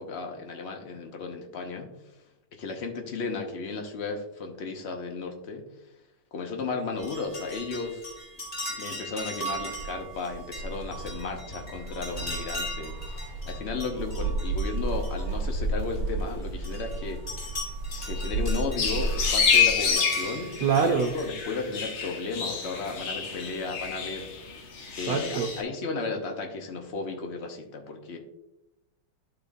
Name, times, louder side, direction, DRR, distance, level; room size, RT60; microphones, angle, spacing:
voice 1, 0.0-1.9 2.5-5.7 6.3-8.0 8.7-17.4 17.9-28.2, left 4 dB, 60° left, 4 dB, 0.6 m, -34 dB
sound 1, 7.0-15.8 16.3-21.3, equal, 35° left, 2.9 m, -39 dB
Gull seagull, 10.6-19.9, right 2 dB, 40° right, 1.3 m, -32 dB
sound 2, 18.8-25.6, left 6 dB, 85° left, 1.8 m, -28 dB
voice 2, 20.6-21.1 24.9-25.5, right 6 dB, 80° right, 0 dB, 1.5 m, -25 dB
12.0 x 4.3 x 2.6 m, 0.90 s
omnidirectional pair, 2.3 m